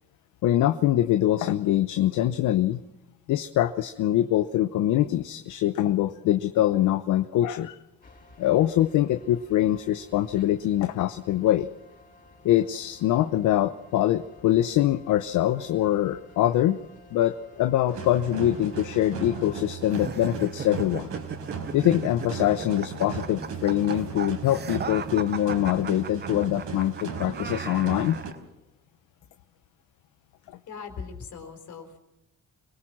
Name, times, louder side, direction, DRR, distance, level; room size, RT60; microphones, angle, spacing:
voice 1, 0.4-2.8 3.3-7.8 8.4-11.7 12.4-16.8 17.1-21.1 21.7-28.2, left 13 dB, 85° left, 10 dB, 0.8 m, -24 dB
Allertor Siren during Storm, 8.0-19.6, left 2 dB, 30° left, 5.2 m, -53 dB
sound 1, 17.9-28.3, right 5 dB, 75° right, 4.5 m, -36 dB
sound 2, 19.9-28.4, right 7 dB, 35° right, 0.8 m, -38 dB
voice 2, 30.7-32.0, left 5 dB, 70° left, 5 dB, 4.2 m, -39 dB
26.0 x 18.5 x 6.1 m, 0.96 s
cardioid pair, 90°, 30 cm